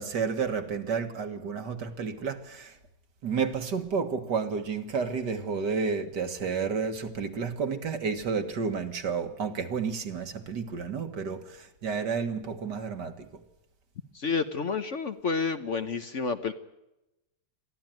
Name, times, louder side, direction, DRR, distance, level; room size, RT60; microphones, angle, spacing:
voice 1, 0.0-2.8 3.2-13.3, right 5 dB, 65° right, 2.3 m, -31 dB
voice 2, 14.1-16.5, left 4 dB, 50° left, 1.2 m, -30 dB
22.5 x 14.5 x 9.1 m
omnidirectional pair, 2.0 m